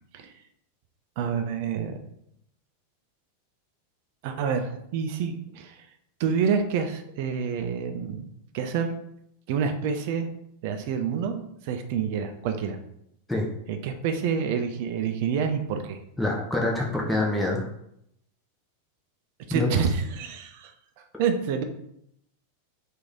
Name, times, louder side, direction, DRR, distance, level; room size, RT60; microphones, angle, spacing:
voice 1, 1.2-2.0 4.2-5.8 6.2-8.2 8.5-8.9 9.5-10.3 10.6-12.8 13.7-16.0 19.5-20.7 21.2-21.6, right 6 dB, 50° right, 7 dB, 0.4 m, -28 dB
voice 2, 16.2-17.7 19.5-19.7, left 2 dB, 5° left, -3 dB, 0.6 m, -25 dB
3.0 x 2.5 x 3.7 m, 0.75 s
figure-of-eight pair, 90°, 0 cm